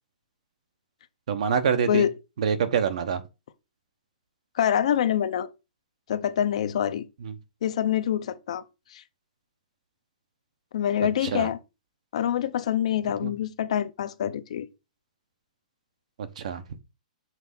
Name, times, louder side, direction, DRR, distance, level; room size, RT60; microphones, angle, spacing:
voice 1, 1.3-2.0 2.4-3.2 7.2-7.3 11.2-11.5 13.2-13.3 16.4-16.6, right 7 dB, 55° right, 0.9 m, -25 dB
voice 2, 4.5-5.5 6.1-7.1 7.6-8.6 8.9-9.0 10.7-11.6 12.1-14.7, left 10 dB, 50° left, 0.6 m, -25 dB
6.0 x 3.3 x 5.6 m
hypercardioid pair, 170°, 4 cm